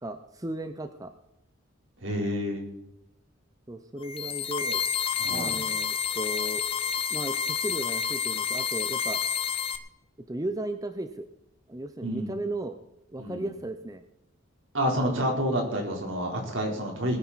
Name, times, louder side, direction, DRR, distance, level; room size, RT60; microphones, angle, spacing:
voice 1, 0.0-1.1 3.7-4.8 5.3-6.6 7.1-9.2 10.3-11.3 11.7-12.8 13.1-14.0, right 1 dB, 15° right, 9 dB, 0.7 m, -35 dB
voice 2, 2.0-2.7 5.2-5.5 12.0-12.4 13.2-13.4 14.7-17.2, equal, 70° right, 1 dB, 3.8 m, -29 dB
Futuristic computer room ambience, 4.0-9.8, left 7 dB, 25° left, 0.9 m, -29 dB
20.5 x 9.9 x 4.1 m, 0.88 s
head